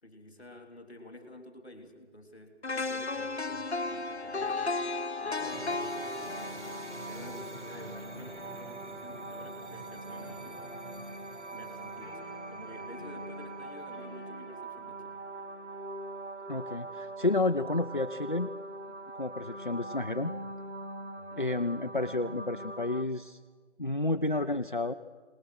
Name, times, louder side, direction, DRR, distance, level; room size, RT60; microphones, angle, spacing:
voice 1, 0.0-10.7 11.5-15.1 21.1-21.5, left 1 dB, 5° left, -10 dB, 1.7 m, -50 dB
sound 1, 2.6-8.6 9.0-9.2, left 3 dB, 65° left, 1.1 m, -35 dB
sound 2, 5.4-23.0, right 2 dB, 75° right, 2.3 m, -42 dB
sound 3, 6.2-16.3, left 3 dB, 25° left, 2.7 m, -53 dB
voice 2, 16.5-18.5 19.1-20.3 21.4-23.4 23.8-24.9, left 2 dB, 45° left, 7 dB, 0.6 m, -30 dB
22.0 x 20.0 x 6.4 m, 1.5 s
figure-of-eight pair, 170°, 35 cm